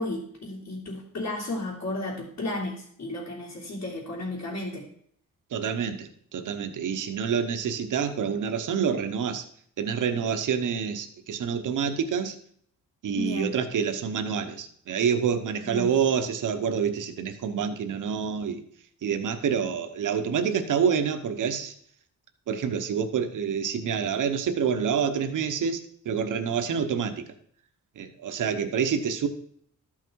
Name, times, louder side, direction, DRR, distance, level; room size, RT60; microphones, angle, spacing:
voice 1, 0.0-4.9 13.1-13.5 15.6-15.9, left 2 dB, 50° left, -6 dB, 2.8 m, -33 dB
voice 2, 5.5-9.4 9.8-12.3 13.0-18.6 19.0-21.7 22.5-27.2 28.0-29.3, right 7 dB, 70° right, 7 dB, 1.1 m, -27 dB
13.0 x 5.8 x 4.7 m, 0.63 s
wide cardioid pair, 170°, 33 cm